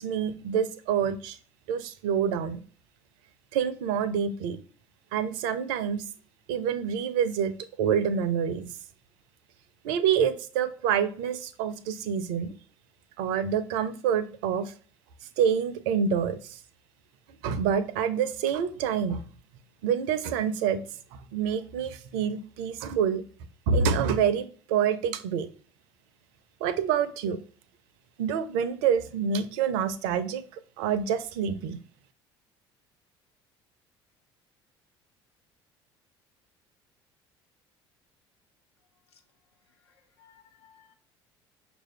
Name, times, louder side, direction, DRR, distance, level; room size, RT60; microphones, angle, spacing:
voice 1, 0.0-1.4 1.7-2.6 3.5-4.6 5.1-6.0 6.5-7.5 7.8-8.7 9.8-12.5 13.2-14.7 15.4-16.4 17.4-19.2 19.8-20.8 21.3-23.2 23.7-25.5 26.6-27.4 28.2-30.4 30.8-31.8, right 7 dB, 60° right, 0.5 m, -27 dB
voice 2, 39.8-40.9, left 7 dB, 75° left, 0.7 m, -60 dB
6.0 x 2.6 x 3.2 m
figure-of-eight pair, 55°, 14 cm